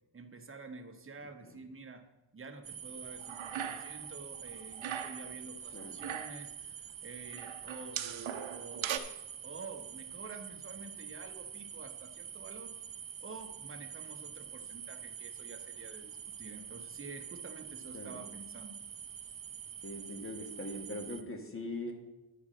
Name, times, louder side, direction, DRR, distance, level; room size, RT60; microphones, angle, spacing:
voice 1, 0.1-2.0 2.3-9.0 9.4-12.7 13.2-18.8, right 3 dB, 25° right, 6 dB, 1.1 m, -49 dB
sound 1, 2.6-21.2, right 8 dB, 45° right, 0.7 m, -46 dB
sound 2, 3.2-4.1 4.3-5.3 5.8-6.5 7.3-9.0, right 9 dB, 85° right, 0.9 m, -39 dB
voice 2, 17.9-18.3 19.8-22.0, left 1 dB, 25° left, 3 dB, 1.5 m, -41 dB
10.5 x 4.7 x 7.6 m, 0.99 s
cardioid pair, 115°, 46 cm